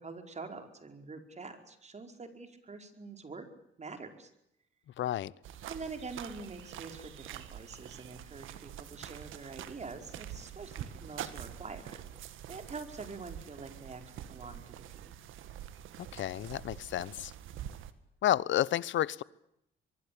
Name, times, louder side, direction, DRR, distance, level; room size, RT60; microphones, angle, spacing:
voice 1, 0.0-3.5 3.8-4.3 5.7-12.0 12.5-15.2, right 4 dB, 35° right, 7 dB, 5.0 m, -45 dB
voice 2, 5.0-5.3 16.0-17.3 18.2-19.2, left 12 dB, 70° left, 21 dB, 1.0 m, -31 dB
sound 1, 5.4-17.9, right 11 dB, 85° right, 2.0 m, -46 dB
24.0 x 23.5 x 8.7 m, 0.80 s
cardioid pair, 90°, 20 cm